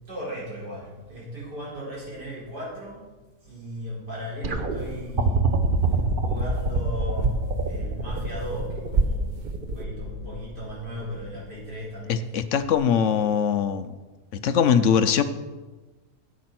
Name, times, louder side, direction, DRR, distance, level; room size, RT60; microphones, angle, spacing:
voice 1, 0.1-3.0 3.4-5.5 6.2-12.4, equal, 90° right, -7 dB, 5.4 m, -36 dB
sound 1, 4.4-11.6 12.7-12.8, right 3 dB, 35° right, 1.0 m, -27 dB
sound 2, 4.8-5.1 5.5-6.9 7.2-8.6 8.9-9.8, right 3 dB, 60° right, 0.4 m, -30 dB
voice 2, 12.1-13.9 14.4-15.2, left 7 dB, 60° left, 11 dB, 0.9 m, -21 dB
11.0 x 8.4 x 6.0 m, 1.2 s
omnidirectional pair, 1.7 m